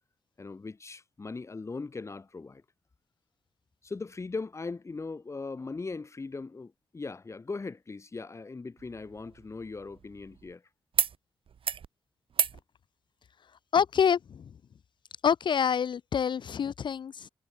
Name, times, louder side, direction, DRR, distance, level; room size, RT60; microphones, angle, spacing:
voice 1, 0.4-2.6 3.8-10.6, left 3 dB, 30° left, 0.8 m, -39 dB
sound 1, 8.8-10.5 10.9-11.2 11.5-11.9 12.3-12.6 13.9-14.0, right 7 dB, 60° right, 1.2 m, -33 dB
voice 2, 13.7-14.5 15.2-17.3, left 7 dB, 50° left, 0.4 m, -27 dB
cardioid pair, 80°, 10 cm